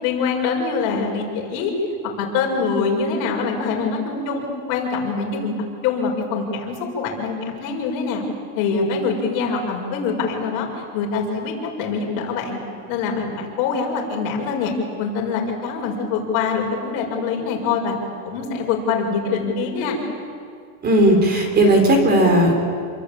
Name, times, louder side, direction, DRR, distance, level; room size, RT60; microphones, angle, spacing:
voice 1, 0.0-1.7 2.2-4.4 4.7-5.5 5.8-8.3 8.6-12.6 12.9-14.7 15.0-18.0 18.2-20.0, left 5 dB, 50° left, 1 dB, 6.5 m, -24 dB
voice 2, 20.8-22.5, right 1 dB, 20° right, 3 dB, 4.0 m, -15 dB
28.5 x 22.5 x 8.7 m, 2.2 s
supercardioid pair, 160°, 42 cm